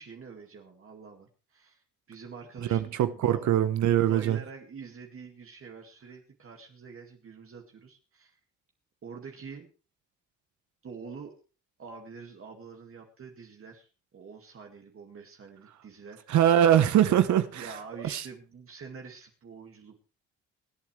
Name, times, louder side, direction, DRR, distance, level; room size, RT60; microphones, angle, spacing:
voice 1, 0.0-3.5 3.9-8.3 9.0-9.7 10.8-11.3 11.8-13.9 14.1-16.2 17.5-20.0, right 5 dB, 45° right, 2.2 m, -46 dB
voice 2, 2.7-4.4 16.3-17.7 18.0-18.3, right 10 dB, 70° right, 1.0 m, -23 dB
24.5 x 8.6 x 3.3 m
cardioid pair, 90°, 30 cm